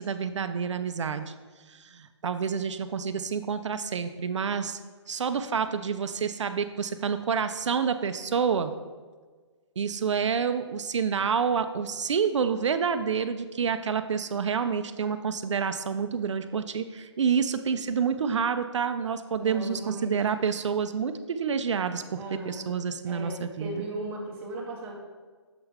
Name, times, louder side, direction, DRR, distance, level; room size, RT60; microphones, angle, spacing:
voice 1, 0.0-1.3 1.7-4.8 5.1-8.7 9.8-22.2 22.5-23.8, right 6 dB, 75° right, 10 dB, 0.4 m, -28 dB
voice 2, 19.4-20.1 22.1-22.7 23.0-24.9, right 1 dB, 10° right, -3 dB, 0.8 m, -37 dB
6.7 x 3.9 x 4.2 m, 1.5 s
hypercardioid pair, 160°, 15 cm